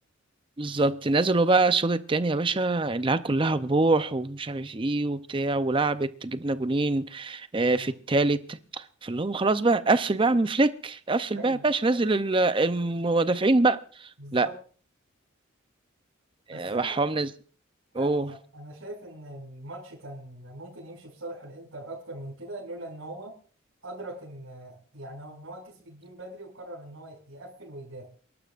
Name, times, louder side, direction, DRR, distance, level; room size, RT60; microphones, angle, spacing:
voice 1, 0.6-13.8 14.3-14.5 16.5-17.3 18.0-18.3, right 2 dB, 25° right, 0.6 m, -24 dB
voice 2, 14.2-14.5 16.5-17.0 17.9-23.3 23.8-28.1, right 1 dB, 90° right, 5.8 m, -42 dB
29.0 x 12.0 x 2.5 m
head